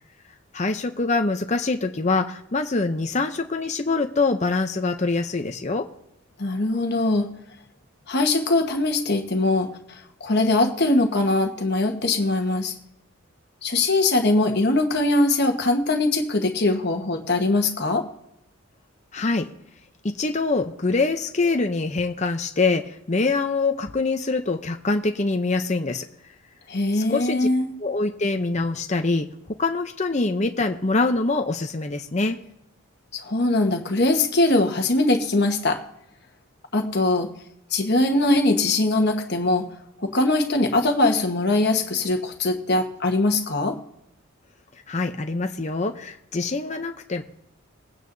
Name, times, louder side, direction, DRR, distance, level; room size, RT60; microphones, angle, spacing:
voice 1, 0.5-5.9 19.1-19.5 20.0-26.0 26.9-27.5 27.8-29.3 29.6-32.4 44.9-47.2, left 3 dB, 35° left, 5 dB, 0.6 m, -24 dB
voice 2, 6.4-7.3 8.1-12.7 13.6-18.0 26.7-27.8 33.1-35.8 36.7-37.3 37.7-39.7 40.0-43.8, left 2 dB, 50° left, 4 dB, 1.3 m, -21 dB
21.5 x 9.4 x 2.7 m, 0.82 s
head